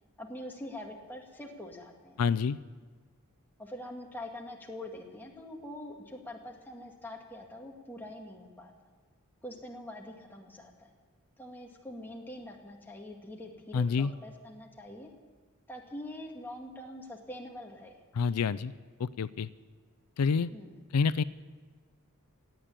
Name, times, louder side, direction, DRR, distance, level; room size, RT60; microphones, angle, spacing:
voice 1, 0.2-2.2 3.6-8.7 9.4-10.9 11.4-15.1 15.7-17.9 20.5-20.8, left 1 dB, 10° left, 0 dB, 2.0 m, -44 dB
voice 2, 2.2-2.6 13.7-14.1 18.2-18.7 19.0-19.5 20.2-20.5 20.9-21.2, left 5 dB, 90° left, 16 dB, 0.4 m, -27 dB
17.0 x 9.1 x 8.8 m, 1.5 s
head